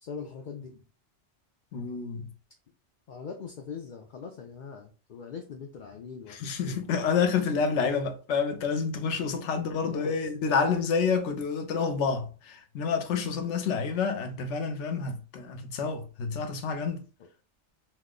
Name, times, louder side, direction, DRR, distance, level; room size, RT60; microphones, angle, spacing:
voice 1, 0.0-0.8 3.1-6.8 9.1-10.2, left 6 dB, 60° left, 0.5 m, -42 dB
voice 2, 1.7-2.3 6.3-17.1, left 5 dB, 85° left, 0.9 m, -28 dB
2.8 x 2.1 x 3.6 m
omnidirectional pair, 1.2 m